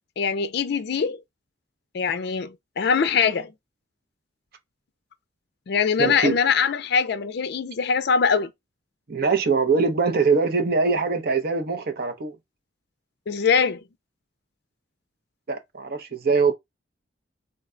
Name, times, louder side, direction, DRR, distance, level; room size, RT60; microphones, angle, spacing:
voice 1, 0.2-1.2 1.9-3.5 5.7-8.5 13.3-13.8, left 6 dB, 60° left, 0.4 m, -22 dB
voice 2, 6.0-6.4 9.1-12.4 15.5-16.5, right 4 dB, 55° right, 0.7 m, -22 dB
3.8 x 2.2 x 3.7 m
head